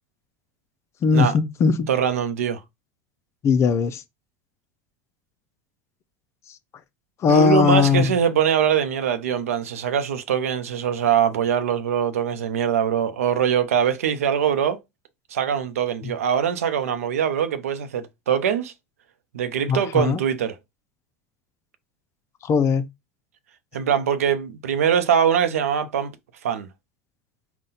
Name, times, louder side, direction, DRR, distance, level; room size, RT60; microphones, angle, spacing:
voice 1, 1.0-1.9 3.4-4.0 7.2-8.1 16.0-16.1 19.7-20.2 22.4-22.9, left 5 dB, 40° left, 0.5 m, -19 dB
voice 2, 1.9-2.6 7.3-14.8 15.3-18.7 19.3-20.6 23.7-26.1 26.4-26.7, right 8 dB, 90° right, 0.6 m, -22 dB
3.9 x 2.2 x 4.0 m
hypercardioid pair, 95°, 7 cm